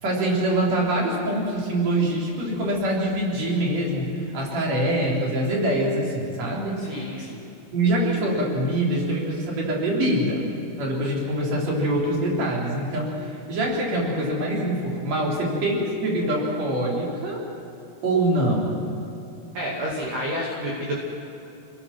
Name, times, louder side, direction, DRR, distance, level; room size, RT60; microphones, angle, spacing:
voice 1, 0.0-7.2 7.7-10.4 10.8-17.4 18.0-18.9, right 1 dB, 35° right, -3 dB, 4.8 m, -24 dB
voice 2, 6.8-7.4 19.5-21.0, equal, 55° right, -4 dB, 4.2 m, -30 dB
28.0 x 20.5 x 6.2 m, 2.9 s
omnidirectional pair, 6.0 m